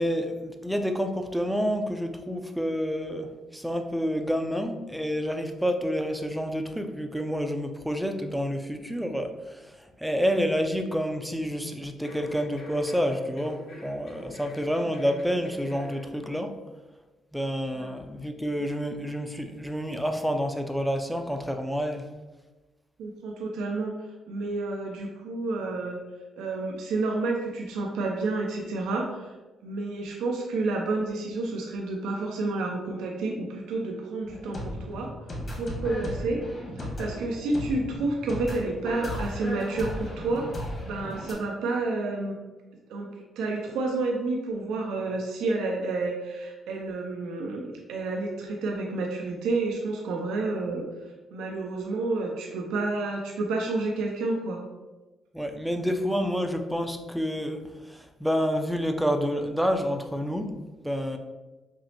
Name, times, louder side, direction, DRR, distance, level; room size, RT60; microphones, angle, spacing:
voice 1, 0.0-16.6 17.3-22.1 55.3-60.5 60.8-61.2, equal, ahead, 5 dB, 0.4 m, -29 dB
sound 1, 12.0-16.1 16.4-16.5, left 1 dB, 65° left, 1.0 m, -45 dB
voice 2, 23.0-23.9 24.3-26.0 26.4-29.3 29.6-35.1 35.5-36.4 36.8-42.4 42.9-50.8 51.3-54.6, right 3 dB, 90° right, 0 dB, 0.4 m, -30 dB
sound 2, 34.2-41.3, left 1 dB, 40° left, 1.4 m, -35 dB
5.9 x 2.1 x 2.8 m, 1.2 s
cardioid pair, 90°, 0 cm